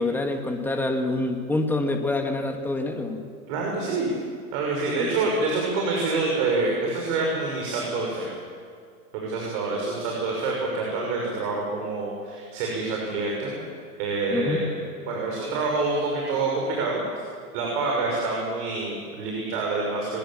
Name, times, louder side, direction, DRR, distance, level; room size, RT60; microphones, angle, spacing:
voice 1, 0.0-3.3 5.0-5.1 14.3-14.6, left 2 dB, 5° left, 4 dB, 1.9 m, -26 dB
voice 2, 3.5-4.1 4.5-8.3 9.1-13.5 14.0-14.7 15.0-17.0 17.5-20.2, right 3 dB, 50° right, -2 dB, 6.2 m, -27 dB
23.0 x 20.5 x 7.3 m, 2.2 s
hypercardioid pair, 100°, 45 cm